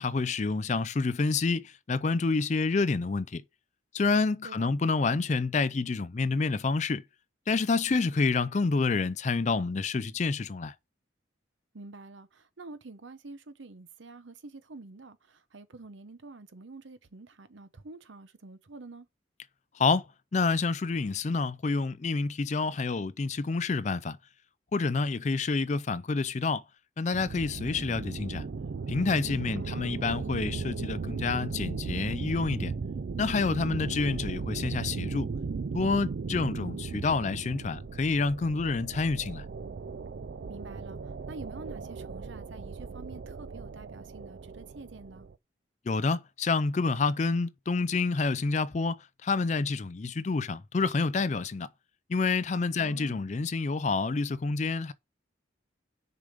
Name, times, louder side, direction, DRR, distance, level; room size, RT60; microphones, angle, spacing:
voice 1, 0.0-3.4 3.9-7.0 7.5-10.7 19.8-20.0 20.3-24.2 24.7-26.6 27.0-28.5 28.9-32.7 33.2-35.3 35.7-39.4 45.9-49.0 49.2-51.7 52.1-54.9, left 4 dB, 35° left, 0.4 m, -28 dB
voice 2, 11.7-19.1 29.5-29.9 40.5-45.3 52.7-53.2, right 3 dB, 75° right, 0.9 m, -47 dB
sound 1, 27.1-45.3, right 4 dB, 60° right, 0.4 m, -37 dB
6.8 x 5.0 x 6.5 m
head